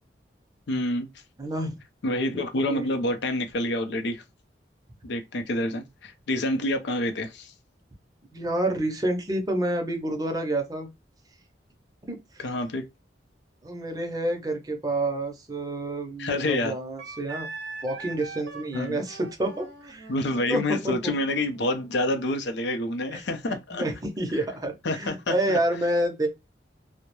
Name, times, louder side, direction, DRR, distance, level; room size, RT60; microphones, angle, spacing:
voice 1, 0.7-1.1 2.0-4.2 5.0-7.5 12.4-12.9 16.2-16.7 18.7-19.0 20.1-23.8 24.3-24.4 24.8-25.6, left 1 dB, 75° left, 0.5 m, -28 dB
voice 2, 1.4-1.7 2.3-2.9 8.3-10.9 12.1-12.2 13.6-17.5 17.8-20.1 20.5-21.1 23.5-26.3, right 1 dB, 20° right, 0.5 m, -29 dB
Wind instrument woodwind instrument, 17.0-22.4, right 3 dB, 80° right, 0.6 m, -42 dB
2.3 x 2.1 x 2.9 m
head